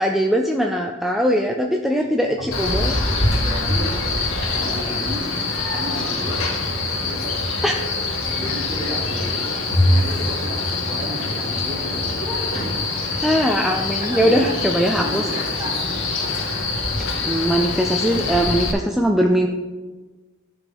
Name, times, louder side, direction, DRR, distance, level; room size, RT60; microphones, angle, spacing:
voice 1, 0.0-3.0 7.6-7.7 13.2-15.3 17.2-19.5, equal, ahead, 2 dB, 0.4 m, -20 dB
sound 1, 2.3-13.3, equal, 80° right, 2.5 m, -28 dB
Male speech man speaking, 2.5-18.7, left 3 dB, 85° left, 1.9 m, -25 dB
voice 2, 3.4-3.9 4.5-5.3 5.7-6.5 7.0-7.3 8.2-9.5 9.8-12.7 14.0-14.6 15.0-16.0, equal, 35° right, -4 dB, 2.5 m, -33 dB
13.0 x 5.8 x 3.5 m, 1.3 s
head